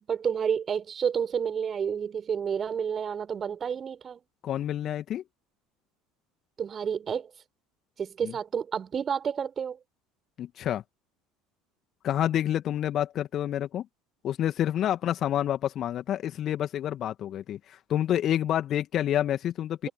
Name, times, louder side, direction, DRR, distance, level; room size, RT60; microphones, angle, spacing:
voice 1, 0.0-4.2 6.6-7.3 8.0-9.8, right 7 dB, 35° right, 6.6 m, -30 dB
voice 2, 4.4-5.2 8.2-8.3 10.4-10.8 12.0-13.9 14.2-19.9, left 11 dB, 45° left, 2.2 m, -28 dB
figure-of-eight pair, 65°, 0 cm